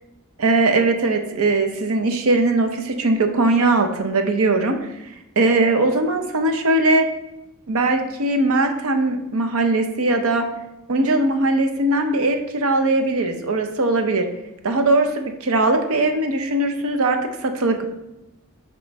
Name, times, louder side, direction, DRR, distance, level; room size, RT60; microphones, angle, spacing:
voice 1, 0.4-4.8 5.4-7.1 7.7-10.4 10.9-14.3 14.6-17.8, right 2 dB, 75° right, 5 dB, 0.7 m, -20 dB
9.2 x 3.1 x 3.5 m, 0.92 s
head